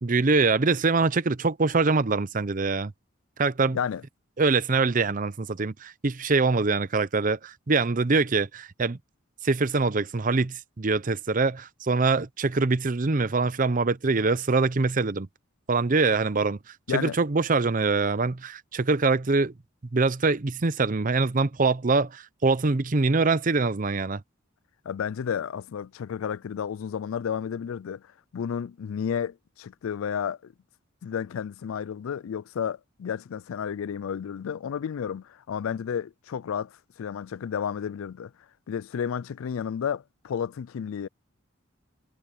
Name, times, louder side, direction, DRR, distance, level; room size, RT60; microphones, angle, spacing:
voice 1, 0.0-2.9 3.4-3.8 4.4-9.0 9.4-15.3 15.7-16.6 16.9-19.5 19.9-24.2, right 3 dB, 40° right, 0.7 m, -24 dB
voice 2, 3.6-4.0 16.9-17.2 24.8-30.5 31.0-38.3 38.7-41.1, left 7 dB, 90° left, 0.4 m, -32 dB
head